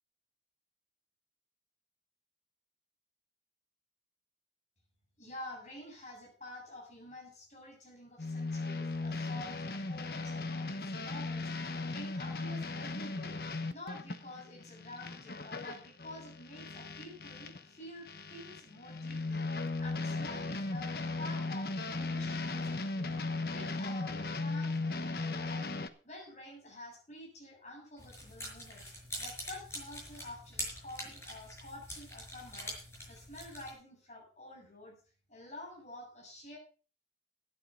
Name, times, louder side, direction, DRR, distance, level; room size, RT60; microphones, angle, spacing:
voice 1, 5.2-13.3 13.7-23.1 23.5-25.7 26.0-28.9 29.2-35.0 35.3-36.6, left 1 dB, 40° left, -2 dB, 7.6 m, -49 dB
sound 1, 8.2-17.6 18.1-25.9, left 3 dB, 55° left, 1.0 m, -37 dB
sound 2, 28.0-33.7, equal, 15° left, 5.7 m, -44 dB
12.0 x 10.0 x 5.6 m, 0.38 s
head